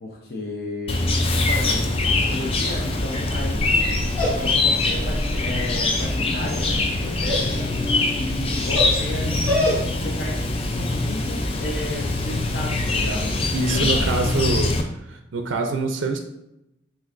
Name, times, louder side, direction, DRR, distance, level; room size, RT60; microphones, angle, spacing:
voice 1, 0.0-4.0 4.3-7.6 8.2-9.6 10.0-14.5, left 1 dB, 55° left, -4 dB, 0.7 m, -33 dB
Chirp tweet, 0.9-14.8, left 2 dB, 30° left, 0.4 m, -23 dB
Dog, 2.0-10.1, left 1 dB, 10° left, 1.6 m, -30 dB
voice 2, 13.5-14.7 15.1-16.2, right 3 dB, 90° right, 4 dB, 0.5 m, -25 dB
7.5 x 2.5 x 2.5 m, 0.86 s
head